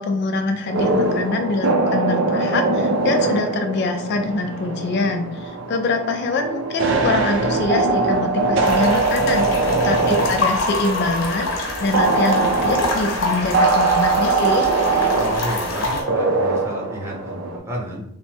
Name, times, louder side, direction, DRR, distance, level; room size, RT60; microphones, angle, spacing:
voice 1, 0.0-14.7, left 3 dB, 55° left, 4 dB, 0.4 m, -24 dB
sound 1, 0.7-17.6, right 3 dB, 70° right, 0.5 m, -22 dB
sound 2, 8.6-16.0, left 3 dB, 70° left, 0.8 m, -26 dB
voice 2, 15.2-18.0, right 1 dB, 15° right, -3 dB, 0.8 m, -31 dB
3.2 x 2.0 x 3.2 m, 0.70 s
head